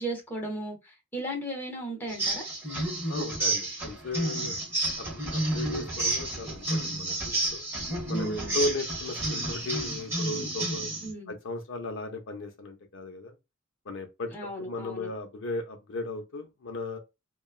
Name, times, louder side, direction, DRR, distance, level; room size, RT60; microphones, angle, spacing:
voice 1, 0.0-2.5 8.1-8.7 11.0-11.3 14.3-15.1, right 1 dB, 10° left, 1.1 m, -36 dB
sound 1, 2.1-11.1, right 2 dB, 10° right, 1.2 m, -31 dB
voice 2, 3.1-4.5 5.0-7.6 8.1-10.9 11.3-13.4 13.8-17.0, left 2 dB, 65° left, 0.6 m, -36 dB
3.0 x 2.3 x 2.3 m
head